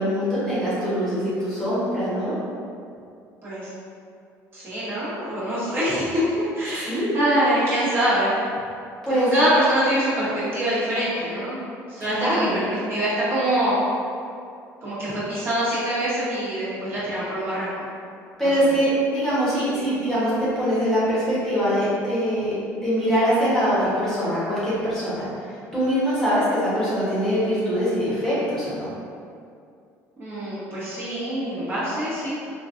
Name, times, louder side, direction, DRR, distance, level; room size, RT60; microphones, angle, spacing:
voice 1, 0.0-2.3 6.9-7.1 9.0-9.3 12.1-12.6 18.4-25.3 25.7-28.9, equal, 5° left, -11 dB, 1.1 m, -23 dB
voice 2, 4.5-8.4 9.3-11.6 11.9-13.8 14.8-17.9 18.4-18.5 30.2-32.4, right 1 dB, 35° right, -11 dB, 1.4 m, -24 dB
3.1 x 2.5 x 2.5 m, 2.4 s
supercardioid pair, 95°, 7 cm